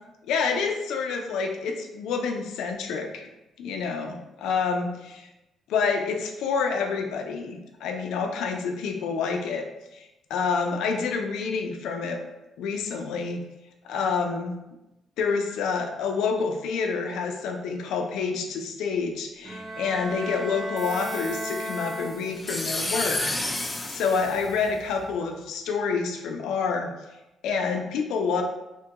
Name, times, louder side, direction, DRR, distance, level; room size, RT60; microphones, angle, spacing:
voice 1, 0.3-3.3 3.6-5.3 5.7-9.6 9.9-12.2 12.6-13.4 13.8-14.6 15.2-23.2 23.9-26.9 27.4-28.4, left 5 dB, 85° left, 3 dB, 0.4 m, -28 dB
Bowed string instrument, 19.5-22.6, right 1 dB, 45° right, 0.6 m, -35 dB
sound 1, 20.8-25.1, left 1 dB, 15° left, 0.4 m, -32 dB
2.7 x 2.2 x 2.8 m, 0.96 s
cardioid pair, 90°, 0 cm